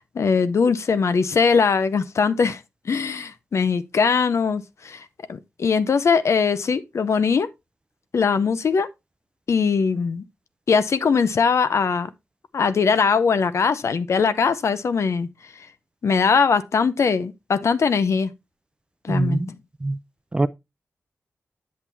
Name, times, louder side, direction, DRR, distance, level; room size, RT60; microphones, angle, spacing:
voice 1, 0.0-2.6 2.9-5.0 5.3-7.5 8.1-8.9 9.5-10.2 10.7-12.1 12.5-15.3 16.0-18.3 19.0-19.6, left 5 dB, 70° left, 0.6 m, -21 dB
voice 2, 19.1-19.5 19.8-20.0 20.3-20.5, right 2 dB, 20° right, 0.5 m, -22 dB
8.3 x 7.4 x 2.7 m
wide cardioid pair, 110°, 5 cm